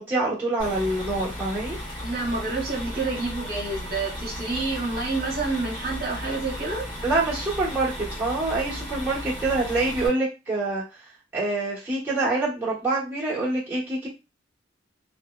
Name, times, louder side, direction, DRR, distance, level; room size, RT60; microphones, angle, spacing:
voice 1, 0.0-1.8 7.0-10.8 11.3-14.1, right 2 dB, 10° right, -8 dB, 1.1 m, -26 dB
sound 1, 0.6-10.1, equal, 25° left, 1.0 m, -35 dB
voice 2, 2.0-6.9, right 3 dB, 55° right, -3 dB, 1.0 m, -28 dB
2.8 x 2.1 x 2.3 m, 0.27 s
head